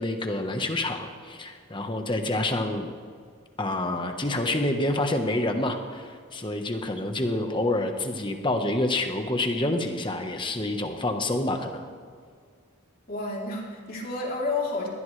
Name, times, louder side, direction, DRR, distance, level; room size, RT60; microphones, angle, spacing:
voice 1, 0.0-2.9 3.6-11.8, left 1 dB, 20° left, 5 dB, 1.3 m, -27 dB
voice 2, 13.1-14.9, left 3 dB, 40° left, -3 dB, 3.5 m, -30 dB
21.5 x 18.5 x 3.4 m, 2.1 s
head